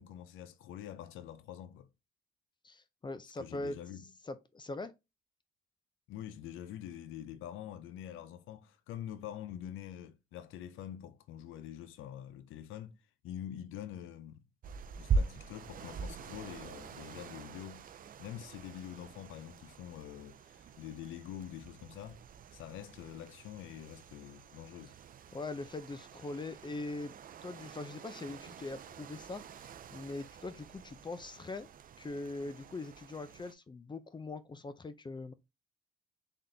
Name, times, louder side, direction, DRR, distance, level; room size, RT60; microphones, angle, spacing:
voice 1, 0.0-1.9 3.4-4.1 6.1-14.4 15.0-17.9 18.2-22.2 22.5-24.9, left 10 dB, 85° left, 0.5 m, -46 dB
voice 2, 2.6-3.8 4.3-4.9 25.3-27.2 27.4-31.7 32.0-35.3, left 2 dB, 25° left, 0.5 m, -42 dB
sound 1, 14.6-33.5, right 4 dB, 45° right, 0.4 m, -43 dB
3.7 x 3.6 x 2.7 m
cardioid pair, 90°, 20 cm